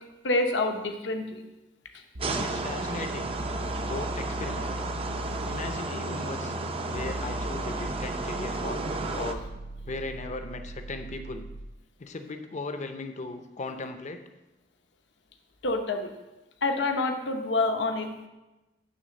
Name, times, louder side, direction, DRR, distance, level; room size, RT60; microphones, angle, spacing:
voice 1, 0.2-1.4 2.3-2.4 15.6-16.1 16.6-18.3, left 2 dB, 80° left, 4 dB, 0.9 m, -27 dB
sound 1, 2.1-11.7, equal, 65° right, 0.7 m, -39 dB
sound 2, 2.2-9.3, right 3 dB, 35° right, 0.5 m, -33 dB
voice 2, 2.4-3.4 3.8-4.8 5.5-6.5 6.9-8.8 9.2-9.4 9.9-11.5 12.0-14.2, left 3 dB, 40° left, 7 dB, 0.6 m, -37 dB
9.6 x 3.4 x 6.5 m, 1.0 s
head